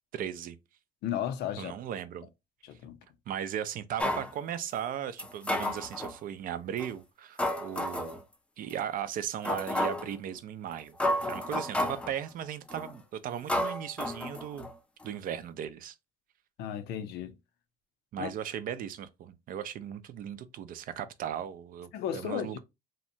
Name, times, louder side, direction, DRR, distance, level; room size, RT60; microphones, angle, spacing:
voice 1, 0.1-0.6 1.6-2.3 3.3-8.2 8.6-11.0 11.3-14.7 15.0-15.9 18.1-22.6, right 9 dB, 55° right, 0.4 m, -37 dB
voice 2, 1.0-1.7 2.6-3.0 16.6-17.3 18.2-18.3 21.9-22.6, left 10 dB, 75° left, 0.5 m, -34 dB
sound 1, 4.0-4.3 5.2-6.2 6.8-6.9 7.4-8.2 8.7-8.8 9.4-10.1 10.7-10.8 11.0-12.1 12.7-13.0 13.5-14.7 15.0-15.1, left 1 dB, 5° left, 0.4 m, -31 dB
2.8 x 2.1 x 2.6 m
cardioid pair, 110°, 17 cm